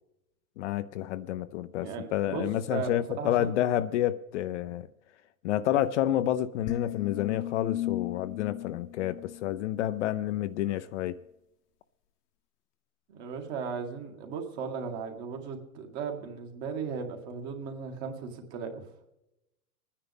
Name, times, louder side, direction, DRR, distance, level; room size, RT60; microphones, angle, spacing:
voice 1, 0.6-4.9 5.4-11.2, left 12 dB, 50° left, 0.6 m, -29 dB
voice 2, 1.8-2.9 3.2-3.5 13.1-18.8, right 6 dB, 45° right, 2.3 m, -36 dB
sound 1, 6.7-10.0, left 14 dB, 70° left, 1.1 m, -36 dB
25.0 x 9.8 x 3.5 m
hypercardioid pair, 140°, 47 cm